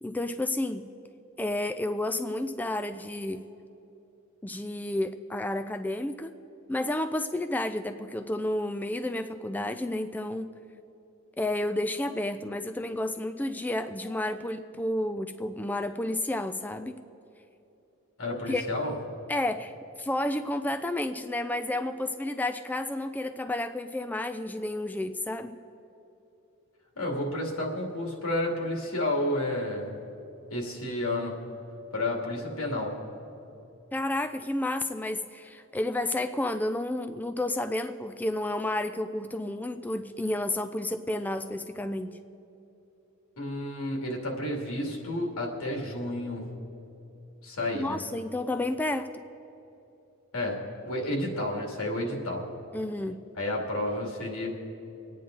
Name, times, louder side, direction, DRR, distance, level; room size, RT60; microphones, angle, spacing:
voice 1, 0.0-0.9 1.4-3.4 4.4-6.3 6.7-10.5 11.4-17.0 18.5-18.7 19.3-25.6 33.9-42.2 47.7-49.2 52.7-53.2, left 1 dB, 10° left, 8 dB, 0.3 m, -31 dB
voice 2, 18.2-18.9 27.0-29.9 30.5-31.4 31.9-32.9 43.4-46.4 47.4-48.0 50.3-52.4 53.4-54.5, left 1 dB, 90° left, -1 dB, 2.5 m, -31 dB
25.5 x 9.4 x 3.8 m, 2.9 s
head